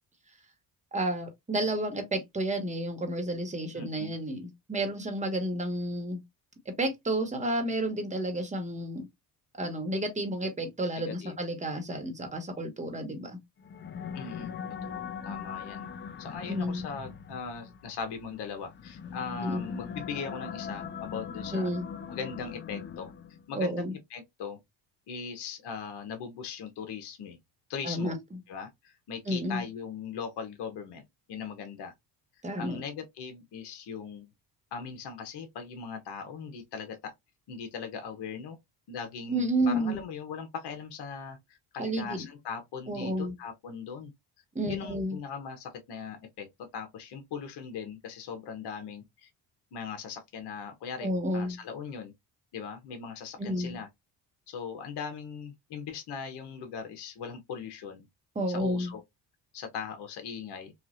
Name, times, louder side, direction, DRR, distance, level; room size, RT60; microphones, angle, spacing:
voice 1, 0.9-6.2 6.6-9.1 9.6-13.4 16.5-16.8 19.4-19.6 21.5-21.8 23.5-23.9 27.8-28.4 29.3-29.6 32.4-32.8 39.3-40.0 41.8-42.3 42.9-43.3 44.5-45.2 51.0-51.6 53.4-53.8 58.3-58.9, right 1 dB, 15° right, 1.2 m, -31 dB
voice 2, 3.7-4.1 11.0-11.4 14.1-14.5 14.8-15.9 16.2-21.7 22.1-23.1 23.5-23.8 24.1-24.6 25.1-27.4 27.7-28.1 28.5-31.9 32.6-34.3 34.7-37.1 37.5-38.6 38.9-44.1 44.6-46.5 46.7-49.3 49.7-52.1 52.5-53.9 54.5-58.1 58.5-59.0 59.5-60.7, left 6 dB, 65° left, 1.1 m, -39 dB
sound 1, 13.6-23.5, left 6 dB, 25° left, 0.4 m, -40 dB
3.1 x 2.5 x 2.5 m
supercardioid pair, 80°, 43 cm